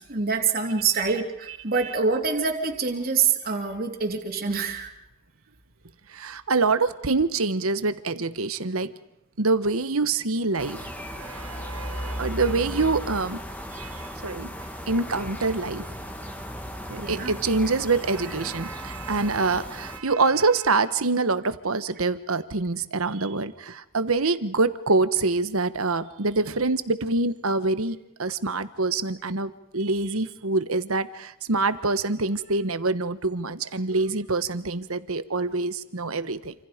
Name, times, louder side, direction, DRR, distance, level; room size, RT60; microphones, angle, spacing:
voice 1, 0.1-4.9 16.9-17.3, right 5 dB, 45° right, 1 dB, 3.0 m, -25 dB
voice 2, 6.1-8.9 9.4-10.9 11.2-13.4 13.7-14.5 14.9-15.9 16.9-36.5, right 3 dB, 75° right, 12 dB, 1.3 m, -25 dB
sound 1, 10.6-20.0, equal, 10° left, 2.1 m, -36 dB
28.0 x 27.0 x 5.2 m, 0.88 s
head